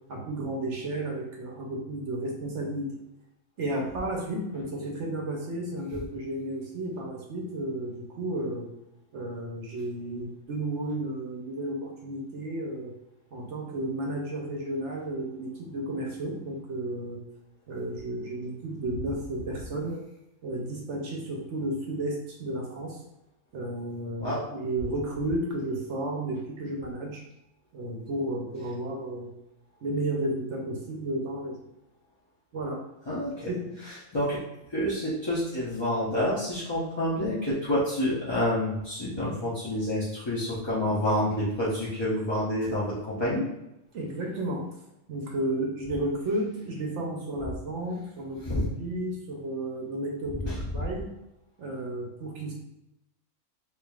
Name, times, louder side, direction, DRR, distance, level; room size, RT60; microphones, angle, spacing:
voice 1, 0.1-3.0 3.6-8.7 9.1-12.9 13.3-17.2 17.7-20.0 20.4-23.0 23.5-27.2 27.7-29.3 29.8-31.6 32.5-32.8 33.5-33.8 43.9-44.7 45.1-51.1 51.6-52.5, right 1 dB, 60° right, 0 dB, 0.9 m, -33 dB
voice 2, 33.1-33.5 34.1-34.4 34.7-43.4 48.4-48.6 50.4-50.6, left 1 dB, 35° left, -9 dB, 0.4 m, -28 dB
4.4 x 2.6 x 2.3 m, 0.87 s
omnidirectional pair, 1.6 m